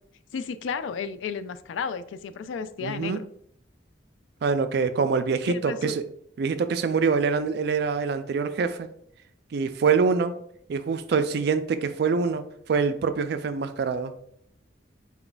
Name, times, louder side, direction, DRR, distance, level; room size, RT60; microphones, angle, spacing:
voice 1, 0.3-3.3 5.5-5.9, left 6 dB, 75° left, 13 dB, 0.3 m, -33 dB
voice 2, 2.8-3.2 4.4-6.0 6.4-8.9 9.5-10.3 10.7-12.4 12.7-14.1, right 5 dB, 55° right, 10 dB, 0.3 m, -25 dB
4.3 x 2.3 x 3.8 m, 0.68 s
head